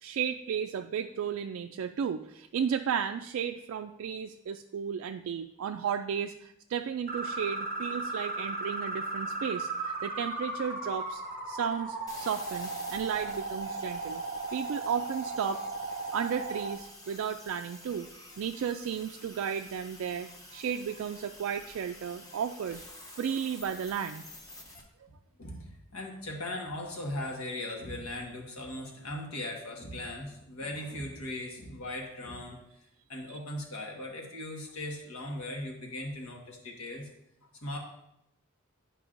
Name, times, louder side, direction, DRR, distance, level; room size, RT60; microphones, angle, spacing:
voice 1, 0.0-14.2 14.5-15.6 16.1-18.1 18.4-22.8 23.1-24.2, right 7 dB, 65° right, 5 dB, 0.3 m, -34 dB
sound 1, 7.1-16.7, right 2 dB, 40° right, 0.8 m, -36 dB
sound 2, 12.1-24.8, left 1 dB, 15° left, 0.9 m, -49 dB
voice 2, 25.4-32.6 33.1-37.1 37.6-37.8, left 1 dB, 85° left, 0 dB, 1.5 m, -38 dB
10.0 x 5.3 x 2.5 m, 0.82 s
head